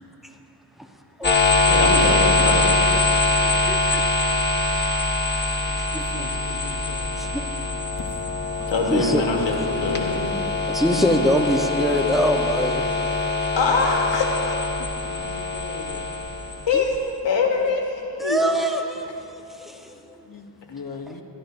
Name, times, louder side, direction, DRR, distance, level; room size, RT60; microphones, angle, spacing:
sound 1, 1.2-17.0, left 3 dB, 25° left, 1.2 m, -23 dB
voice 1, 1.7-2.8 8.7-10.2 13.6-14.4 16.7-17.0 17.2-18.4, left 4 dB, 75° left, 1 dB, 1.5 m, -23 dB
voice 2, 3.4-4.0 5.6-6.6 7.2-7.6 8.6-9.2 10.7-12.9 16.7-17.2 18.1-20.2 21.1-21.2, equal, ahead, 3 dB, 1.0 m, -25 dB
voice 3, 5.6-7.2 14.8-16.1 20.3-21.2, left 4 dB, 50° left, 4 dB, 1.1 m, -40 dB
15.5 x 11.0 x 2.6 m, 2.7 s
cardioid pair, 45°, 45 cm